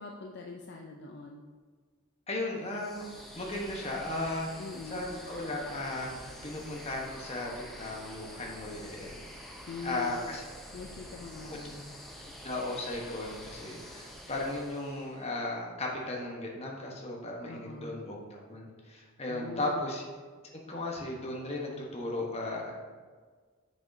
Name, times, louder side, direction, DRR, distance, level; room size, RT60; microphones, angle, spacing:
voice 1, 0.0-1.4 4.6-5.1 9.7-10.2 10.7-12.0 17.5-17.9 19.3-19.8, left 4 dB, 50° left, 1 dB, 0.4 m, -43 dB
voice 2, 2.3-3.0 3.3-6.2 6.4-9.2 9.5-10.4 11.4-11.6 12.4-20.0 20.7-22.7, left 2 dB, 30° left, -1 dB, 1.0 m, -36 dB
sound 1, 2.6-15.3, equal, ahead, 0.6 m, -47 dB
7.0 x 6.1 x 2.7 m, 1.5 s
head